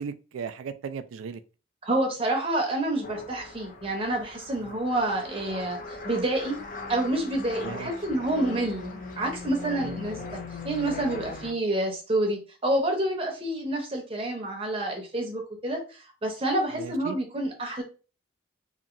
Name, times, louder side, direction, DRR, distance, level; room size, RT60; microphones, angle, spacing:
voice 1, 0.0-1.4 4.6-4.8 7.6-8.2 9.8-10.3 16.8-17.2, right 6 dB, 90° right, 0.3 m, -37 dB
voice 2, 1.8-6.6 6.9-10.4 10.6-17.8, right 1 dB, 30° right, 0.7 m, -28 dB
sound 1, 3.0-11.5, left 3 dB, 45° left, 0.5 m, -39 dB
2.8 x 2.7 x 2.5 m
head